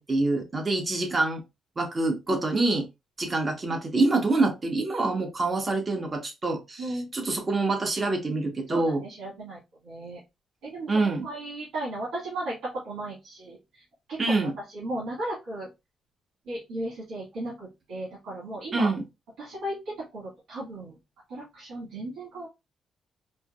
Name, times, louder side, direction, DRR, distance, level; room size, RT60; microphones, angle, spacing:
voice 1, 0.0-1.4 1.8-2.8 3.2-9.0 10.9-11.3 14.2-14.5 18.7-19.0, right 2 dB, 30° right, 1.1 m, -26 dB
voice 2, 6.8-7.1 8.7-9.6 9.8-10.2 10.6-10.9 11.2-13.6 14.1-15.7 16.5-18.9 19.4-19.8 20.1-20.9 21.3-22.5, right 1 dB, 85° right, 1.7 m, -35 dB
4.4 x 2.1 x 2.3 m
cardioid pair, 95°, 0 cm